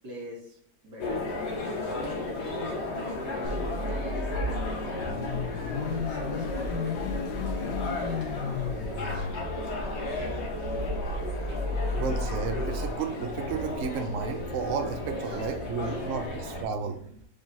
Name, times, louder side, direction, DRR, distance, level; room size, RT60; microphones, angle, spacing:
voice 1, 0.0-0.6 0.8-2.2 2.5-3.1 3.8-4.9 5.9-8.1 8.3-10.2 15.2-16.4, equal, 85° right, -3 dB, 2.3 m, -44 dB
sound 1, 1.0-16.6, left 2 dB, 50° left, 1.0 m, -34 dB
Car / Idling / Accelerating revving vroom, 3.4-12.9, left 3 dB, 85° left, 1.3 m, -33 dB
voice 2, 11.9-17.2, right 5 dB, 60° right, 5 dB, 0.8 m, -32 dB
5.2 x 3.7 x 2.6 m, 0.67 s
omnidirectional pair, 1.8 m